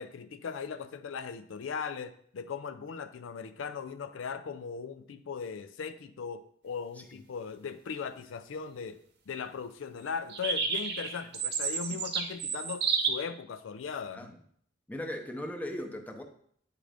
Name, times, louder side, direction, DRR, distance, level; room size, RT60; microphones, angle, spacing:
voice 1, 0.0-9.0 9.3-14.3, left 6 dB, 85° left, 10 dB, 0.4 m, -38 dB
sound 1, 10.3-13.1, right 5 dB, 60° right, 0.9 m, -30 dB
voice 2, 14.9-16.2, left 1 dB, 10° left, 3 dB, 0.6 m, -38 dB
8.7 x 3.7 x 3.4 m, 0.63 s
head